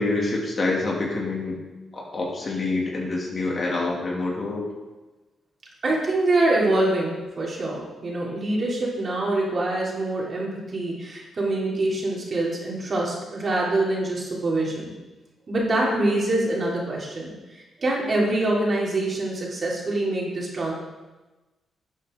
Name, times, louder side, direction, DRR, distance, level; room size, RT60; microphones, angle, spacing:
voice 1, 0.0-1.6 1.9-4.6, left 2 dB, 45° left, -2 dB, 2.8 m, -26 dB
voice 2, 5.8-14.9 15.5-20.7, right 2 dB, 45° right, -4 dB, 3.5 m, -25 dB
11.0 x 8.5 x 4.0 m, 1.2 s
cardioid pair, 75°, 0 cm